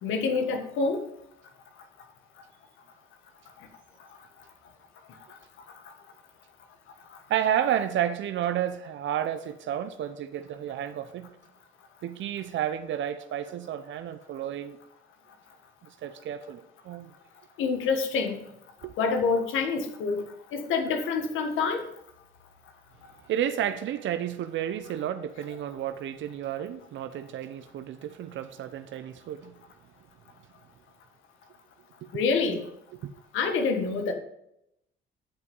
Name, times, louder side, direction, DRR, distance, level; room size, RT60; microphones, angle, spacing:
voice 1, 0.0-1.0 17.6-18.4 19.0-20.2 20.5-21.8 32.1-32.6 33.3-34.1, left 4 dB, 90° left, 1.4 m, -26 dB
voice 2, 7.3-11.3 12.0-14.8 16.0-17.1 18.8-18.9 23.2-29.5 33.0-33.1, right 10 dB, 75° right, 0.7 m, -31 dB
10.5 x 5.4 x 5.3 m
cardioid pair, 90°, 20 cm